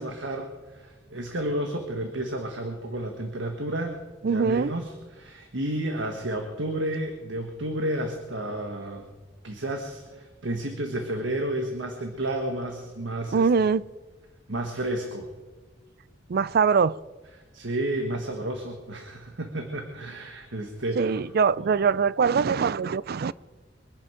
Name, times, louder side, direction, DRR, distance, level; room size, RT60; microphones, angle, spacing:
voice 1, 0.0-9.1 9.4-13.5 14.5-15.3 17.5-21.2 21.6-21.7, right 1 dB, 75° right, 1.6 m, -31 dB
voice 2, 4.2-4.7 13.3-13.8 16.3-16.9 21.0-23.3, right 5 dB, 55° right, 0.4 m, -22 dB
23.5 x 11.0 x 5.1 m
head